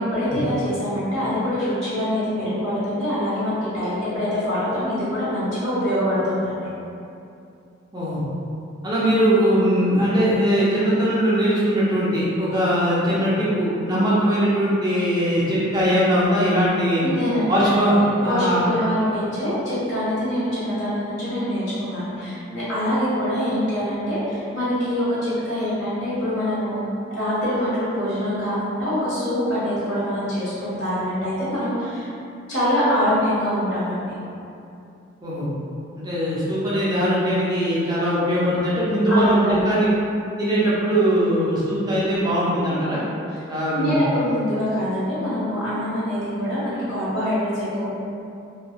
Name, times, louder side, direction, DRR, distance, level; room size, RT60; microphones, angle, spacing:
voice 1, 0.0-6.7 17.0-17.7 18.0-26.8 27.1-32.1 32.5-34.1 39.1-39.6 43.7-47.9, equal, 65° left, -12 dB, 1.3 m, -24 dB
voice 2, 7.9-8.2 8.8-17.0 17.5-18.7 35.2-35.5 36.0-39.9 40.4-43.0 43.5-44.0, equal, 20° right, -8 dB, 0.4 m, -20 dB
3.0 x 2.1 x 2.2 m, 2.6 s
head